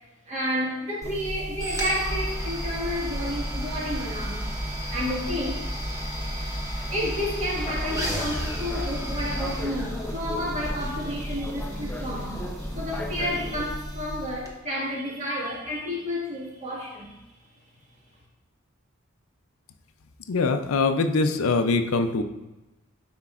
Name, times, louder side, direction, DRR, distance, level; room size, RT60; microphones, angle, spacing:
voice 1, 0.3-4.5 4.9-5.7 6.9-17.2, equal, 35° right, -4 dB, 1.7 m, -31 dB
sound 1, 1.0-14.5, equal, 15° right, 0.9 m, -32 dB
sound 2, 7.6-13.7, left 2 dB, 10° left, 0.5 m, -39 dB
voice 2, 20.3-22.2, left 3 dB, 85° left, 8 dB, 0.5 m, -23 dB
9.7 x 4.5 x 2.4 m, 1.0 s
head